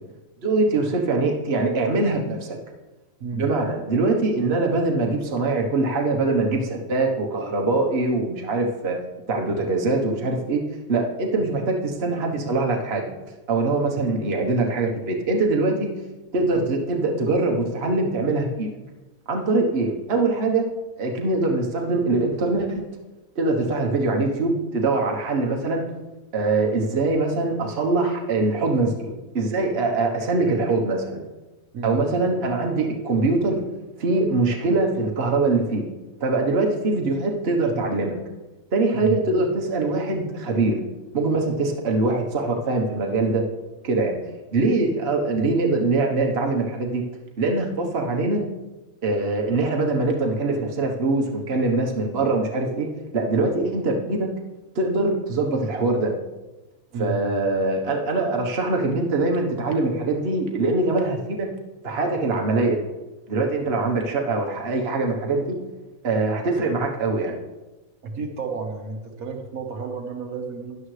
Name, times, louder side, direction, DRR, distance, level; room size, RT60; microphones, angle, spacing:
voice 1, 0.4-2.6 3.3-9.0 9.3-10.6 10.9-13.0 13.5-15.9 16.3-18.7 19.3-20.7 21.0-22.9 23.4-25.9 26.3-31.2 31.8-33.7 34.0-35.8 36.2-38.2 38.7-40.8 41.1-43.4 43.8-44.2 44.5-47.0 47.4-48.4 49.0-54.3 54.7-56.1 57.0-61.5 61.8-62.8 63.3-65.5 66.0-67.4, right 3 dB, 50° right, 1 dB, 1.4 m, -23 dB
voice 2, 68.0-70.8, right 4 dB, 80° right, 2 dB, 1.7 m, -31 dB
12.5 x 10.5 x 3.2 m, 1.1 s
omnidirectional pair, 1.5 m